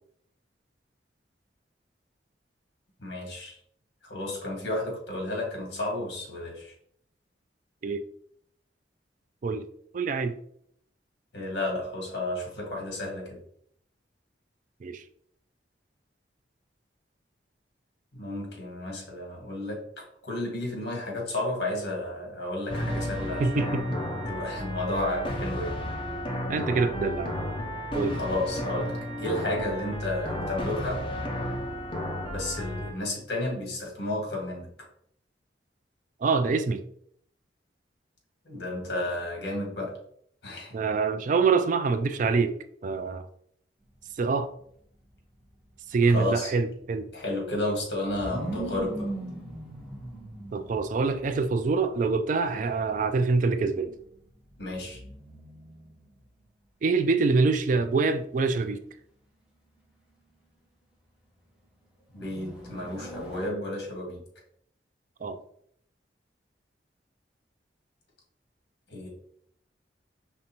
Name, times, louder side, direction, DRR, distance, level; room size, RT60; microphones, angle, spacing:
voice 1, 3.0-3.6 4.0-6.7 11.3-13.4 18.1-23.8 24.3-25.8 28.1-28.9 29.2-31.0 32.3-34.7 38.5-40.0 40.4-40.8 46.1-46.5 47.1-49.1 54.6-55.0 62.1-64.2 68.9-69.1, left 1 dB, 70° left, 0 dB, 1.7 m, -32 dB
voice 2, 9.9-10.4 14.8-15.0 23.4-24.0 26.5-27.4 27.9-28.2 36.2-36.8 40.7-42.6 42.8-43.3 44.2-44.5 45.9-47.1 50.5-54.0 56.8-58.8 65.2-65.4, right 4 dB, 45° right, 10 dB, 0.3 m, -25 dB
sound 1, 22.7-32.9, left 1 dB, 30° left, 0.7 m, -32 dB
sound 2, 43.8-56.3 57.5-58.3 62.1-63.5, right 1 dB, 5° right, 1.1 m, -41 dB
5.2 x 3.4 x 2.9 m, 0.66 s
head